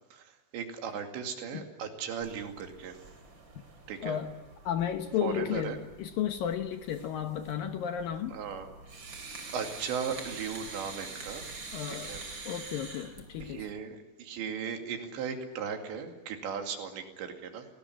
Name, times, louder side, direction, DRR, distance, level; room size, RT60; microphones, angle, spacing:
voice 1, 0.1-3.0 3.9-4.2 5.2-5.8 8.3-8.7 9.5-11.5 11.9-12.2 13.4-17.7, right 6 dB, 80° right, 4 dB, 4.7 m, -37 dB
sound 1, 2.2-13.7, right 3 dB, 30° right, 3.3 m, -46 dB
voice 2, 4.0-4.4 4.6-8.4 11.7-13.7, left 9 dB, 70° left, 7 dB, 2.3 m, -33 dB
27.0 x 19.0 x 9.8 m, 1.1 s
omnidirectional pair, 5.0 m